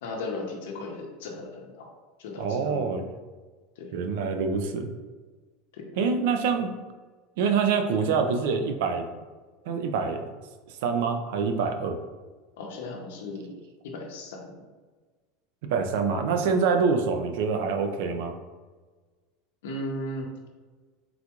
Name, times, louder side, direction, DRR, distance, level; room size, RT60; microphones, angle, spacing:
voice 1, 0.0-1.9 2.2-2.9 3.8-3.9 5.7-5.9 12.6-13.6 13.8-14.5 19.6-20.3, left 2 dB, 85° left, 1 dB, 0.7 m, -36 dB
voice 2, 2.4-3.1 3.9-4.9 6.0-6.7 7.4-9.1 9.7-10.3 10.7-12.0 15.7-18.3, right 5 dB, 75° right, 5 dB, 0.4 m, -26 dB
3.8 x 2.3 x 2.9 m, 1.4 s
supercardioid pair, 150°, 0 cm